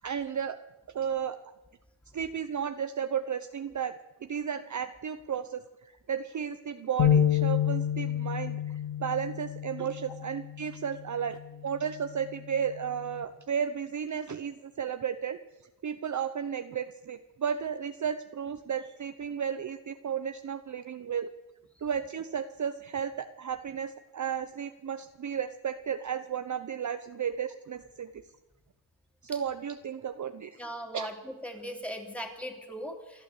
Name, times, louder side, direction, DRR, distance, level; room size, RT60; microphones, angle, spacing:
voice 1, 0.0-0.6 0.9-1.4 2.1-3.9 4.2-11.4 11.6-15.4 15.8-21.3 21.8-28.2 29.2-30.6 30.9-31.1, right 8 dB, 40° right, 9 dB, 0.8 m, -33 dB
sound 1, 7.0-13.2, left 10 dB, 75° left, 2.5 m, -30 dB
voice 2, 30.6-33.2, equal, 5° left, 3 dB, 3.2 m, -39 dB
28.0 x 11.5 x 8.4 m, 1.1 s
wide cardioid pair, 130°, 46 cm